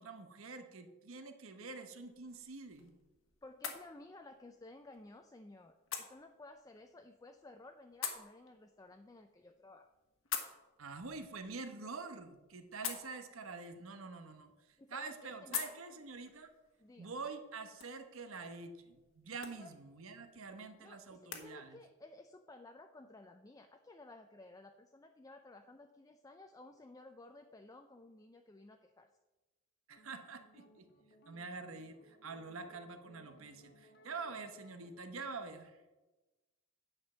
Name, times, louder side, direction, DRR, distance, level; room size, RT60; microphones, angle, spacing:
voice 1, 0.0-2.9 10.8-14.5 14.9-16.5 17.0-21.8 29.9-30.8 31.3-35.8, right 4 dB, 85° right, 8 dB, 1.1 m, -46 dB
sound 1, 2.0-21.5, left 8 dB, 80° left, 1.4 m, -49 dB
voice 2, 3.4-9.9 14.8-15.7 16.8-17.1 19.6-19.8 20.8-29.1, left 2 dB, 15° left, 6 dB, 0.4 m, -55 dB
sound 2, 29.9-34.9, equal, 50° left, 1.3 m, -64 dB
9.9 x 5.2 x 7.3 m, 1.1 s
head